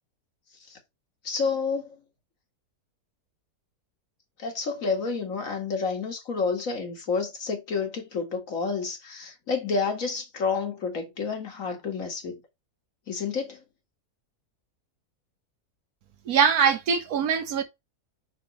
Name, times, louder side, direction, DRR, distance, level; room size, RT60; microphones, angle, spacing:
voice 1, 1.2-2.0 4.4-12.4 13.1-13.6, left 5 dB, 60° left, 2.1 m, -29 dB
voice 2, 16.3-17.6, right 6 dB, 75° right, 1.5 m, -22 dB
5.7 x 5.4 x 3.1 m
omnidirectional pair, 1.6 m